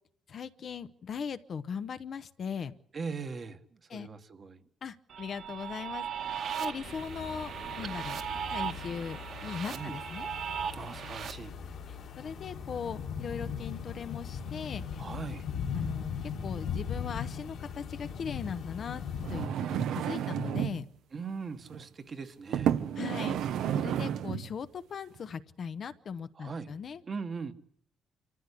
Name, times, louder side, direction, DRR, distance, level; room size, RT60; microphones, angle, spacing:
voice 1, 0.3-2.7 3.9-4.1 4.8-6.0 6.3-7.5 7.8-8.2 8.5-10.3 11.9-15.0 15.7-19.0 19.3-20.9 23.0-23.4 23.7-27.0, left 6 dB, 45° left, 0.9 m, -39 dB
voice 2, 2.9-4.6 9.7-10.0 10.7-11.5 15.0-15.5 21.1-22.7 26.3-26.7 27.0-27.5, right 5 dB, 35° right, 1.4 m, -40 dB
sound 1, 5.1-11.3, right 8 dB, 55° right, 2.0 m, -37 dB
sound 2, 6.8-19.5, left 7 dB, 60° left, 2.4 m, -39 dB
sound 3, 19.1-20.8 21.6-21.8 22.5-24.5 25.2-25.3, right 9 dB, 80° right, 1.1 m, -31 dB
26.0 x 14.5 x 8.4 m
cardioid pair, 140°, 0 cm